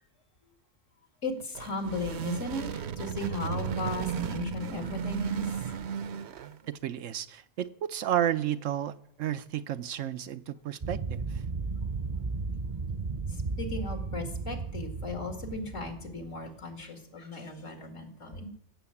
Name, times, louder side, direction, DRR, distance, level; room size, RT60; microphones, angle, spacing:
voice 1, 1.2-5.7 13.6-18.5, left 3 dB, 80° left, 2.6 m, -36 dB
sound 1, 1.4-6.7, right 7 dB, 65° right, 0.9 m, -34 dB
voice 2, 6.7-11.2, right 11 dB, 90° right, 1.1 m, -32 dB
sound 2, 10.8-16.6, right 4 dB, 35° right, 0.6 m, -35 dB
16.5 x 7.7 x 7.2 m
omnidirectional pair, 1.3 m